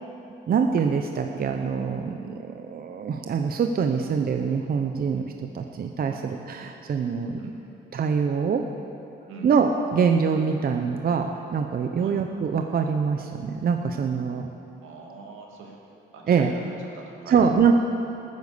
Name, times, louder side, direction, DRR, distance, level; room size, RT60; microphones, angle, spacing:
voice 1, 0.5-5.3 5.5-7.5 7.9-8.6 9.4-14.5 16.3-16.5 17.3-17.7, right 6 dB, 50° right, 4 dB, 0.8 m, -24 dB
voice 2, 14.8-15.8 16.1-17.4, right 4 dB, 85° right, -1 dB, 2.3 m, -43 dB
14.5 x 9.6 x 6.7 m, 2.8 s
cardioid pair, 90°, 20 cm